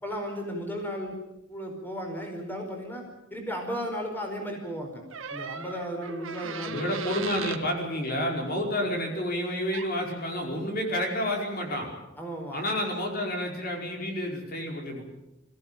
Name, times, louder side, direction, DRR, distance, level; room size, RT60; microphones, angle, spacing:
voice 1, 0.0-1.2 1.5-3.0 3.3-5.0 5.3-6.8 12.2-12.6, equal, 10° left, 2 dB, 5.0 m, -34 dB
sound 1, 5.1-7.6 9.7-9.9, right 6 dB, 75° right, 1.6 m, -38 dB
voice 2, 6.7-11.9 12.5-15.0, left 1 dB, 50° left, 1 dB, 5.1 m, -30 dB
25.5 x 16.0 x 9.0 m, 0.94 s
head